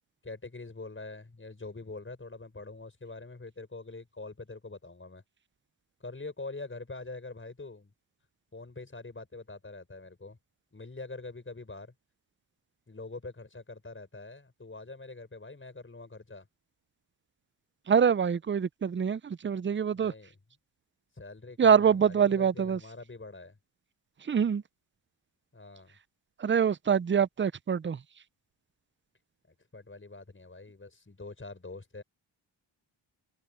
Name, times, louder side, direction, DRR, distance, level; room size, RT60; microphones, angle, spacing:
voice 1, 0.2-5.2 6.0-7.9 8.5-10.4 10.7-11.9 12.9-16.5 19.9-20.4 21.1-23.6 25.5-26.0 29.5-32.0, left 3 dB, 25° left, 5.9 m, -44 dB
voice 2, 17.9-20.1 21.6-22.8 24.3-24.6 26.4-28.0, right 7 dB, 25° right, 0.5 m, -25 dB
cardioid pair, 70°, 47 cm